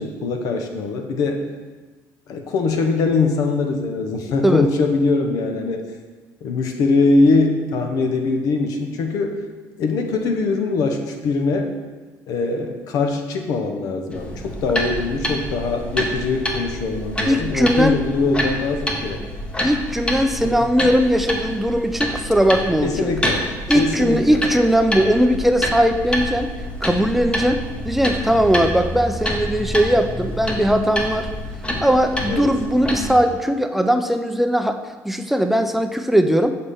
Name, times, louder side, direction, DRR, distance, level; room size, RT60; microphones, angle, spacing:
voice 1, 0.0-1.4 2.3-5.8 6.4-9.4 9.8-11.7 12.3-19.2 22.8-23.5 23.7-24.5 32.3-32.5, left 3 dB, 70° left, 4 dB, 0.7 m, -22 dB
sound 1, 14.1-33.2, equal, 15° left, 0.9 m, -27 dB
voice 2, 17.3-18.0 19.6-23.1 23.7-26.5 26.8-31.3 31.8-34.8 35.0-36.5, equal, 5° right, 6 dB, 0.4 m, -19 dB
6.9 x 4.2 x 3.5 m, 1.3 s
cardioid pair, 100°, 6 cm